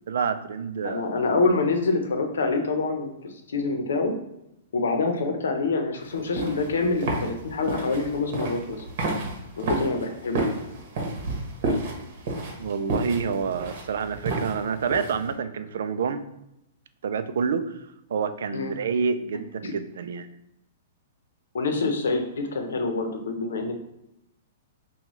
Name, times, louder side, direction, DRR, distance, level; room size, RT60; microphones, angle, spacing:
voice 1, 0.1-1.1 12.6-16.3 17.0-17.8 18.1-20.3, right 6 dB, 75° right, 11 dB, 0.4 m, -28 dB
voice 2, 0.8-4.2 4.7-8.8 9.6-10.4 18.5-18.7 19.6-19.7 21.5-23.8, left 3 dB, 85° left, 5 dB, 0.7 m, -26 dB
sound 1, 6.1-15.3, right 2 dB, 50° right, 1.1 m, -31 dB
5.4 x 2.3 x 3.0 m, 0.84 s
hypercardioid pair, 145°, 0 cm